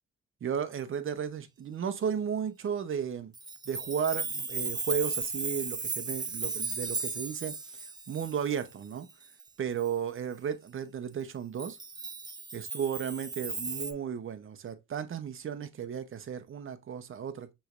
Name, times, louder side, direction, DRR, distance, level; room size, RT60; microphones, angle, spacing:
voice 1, 0.4-3.3 3.7-7.5 8.1-9.1 9.6-11.8 12.5-17.5, right 8 dB, 45° right, 0.7 m, -34 dB
Chime, 3.3-9.4 9.8-9.9 11.6-13.9, right 4 dB, 15° right, 0.4 m, -36 dB
6.2 x 3.1 x 2.4 m
cardioid pair, 110°, 29 cm